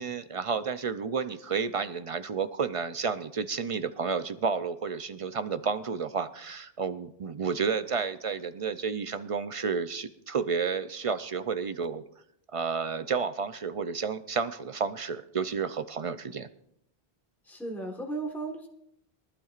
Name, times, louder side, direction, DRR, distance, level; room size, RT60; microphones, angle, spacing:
voice 1, 0.0-12.0 12.5-16.5, right 5 dB, 45° right, 11 dB, 0.5 m, -31 dB
voice 2, 17.4-18.7, right 2 dB, ahead, 1 dB, 1.3 m, -35 dB
22.5 x 12.0 x 2.5 m, 0.77 s
omnidirectional pair, 1.0 m